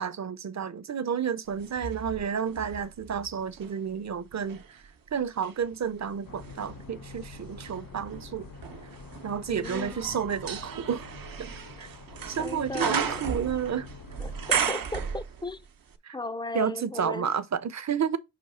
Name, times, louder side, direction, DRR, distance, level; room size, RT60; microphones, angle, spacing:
voice 1, 0.0-4.8 5.1-8.5 9.2-11.1 11.8-11.9 12.3-13.9 16.0-16.2 16.5-18.2, right 7 dB, 55° right, 0.6 m, -31 dB
sound 1, 1.6-3.8 4.3-15.7 15.9-16.0, right 7 dB, 85° right, 0.8 m, -35 dB
sound 2, 6.2-14.6, left 4 dB, 75° left, 1.1 m, -46 dB
voice 2, 9.5-10.2 11.8-11.9 12.4-13.3 14.2-15.6 16.1-17.3, left 2 dB, 15° left, 0.3 m, -36 dB
5.9 x 3.1 x 5.5 m
wide cardioid pair, 110°, 33 cm